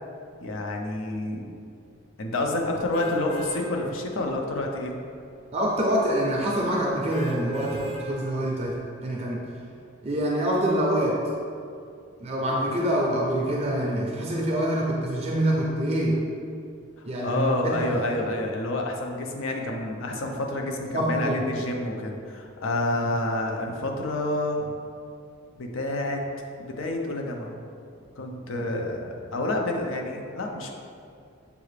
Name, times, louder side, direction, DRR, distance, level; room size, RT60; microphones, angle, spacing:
voice 1, 0.4-1.5 2.2-4.9 17.0-24.7 25.6-26.2 26.6-27.6 28.2-30.7, left 2 dB, 70° left, 1 dB, 0.6 m, -29 dB
sound 1, 2.9-3.6 4.2-4.3 7.1-8.0 8.6-8.7, right 1 dB, 30° left, 0.5 m, -35 dB
voice 2, 5.5-9.4 10.0-11.2 12.2-16.2 17.0-18.2 20.9-21.4 22.9-23.1, right 1 dB, 30° right, -3 dB, 0.4 m, -26 dB
6.7 x 2.4 x 3.2 m, 2.4 s
head